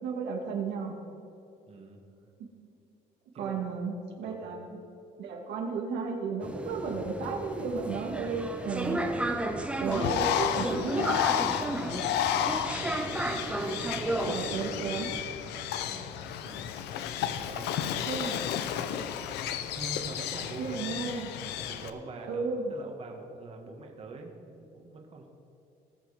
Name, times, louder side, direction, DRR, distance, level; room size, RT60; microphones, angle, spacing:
voice 1, 0.0-1.0 2.4-2.5 3.4-4.8 5.2-9.0 9.8-11.1 14.3-15.1 18.0-18.6 20.6-21.3 22.3-22.7, right 4 dB, 85° right, 0 dB, 2.1 m, -33 dB
voice 2, 1.7-2.0 3.3-3.6 4.2-4.4 11.5-12.0 15.8-16.7 17.3-18.4 19.7-21.0 21.6-22.4 22.7-25.3, right 3 dB, 35° right, 1 dB, 1.7 m, -45 dB
sound 1, 6.4-15.2, right 1 dB, 5° right, 1.2 m, -33 dB
Bird, 9.9-21.9, left 10 dB, 85° left, 0.7 m, -32 dB
19.0 x 6.6 x 5.0 m, 2.9 s
cardioid pair, 110°, 17 cm